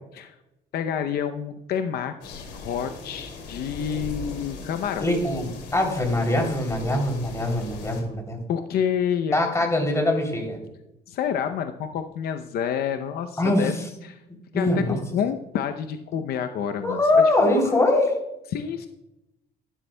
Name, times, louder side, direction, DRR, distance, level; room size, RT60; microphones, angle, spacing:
voice 1, 0.7-5.1 8.5-9.5 11.1-13.7 14.0-14.2 14.5-17.2 17.5-17.8 18.5-18.9, left 8 dB, 65° left, 8 dB, 0.6 m, -28 dB
sound 1, 2.2-8.0, left 3 dB, 85° left, 2.7 m, -39 dB
voice 2, 5.0-8.4 9.3-10.6 13.4-13.7 14.5-15.0 16.8-18.2, left 2 dB, 15° left, 2 dB, 3.0 m, -22 dB
12.5 x 12.0 x 2.2 m, 0.91 s
cardioid pair, 110°, 17 cm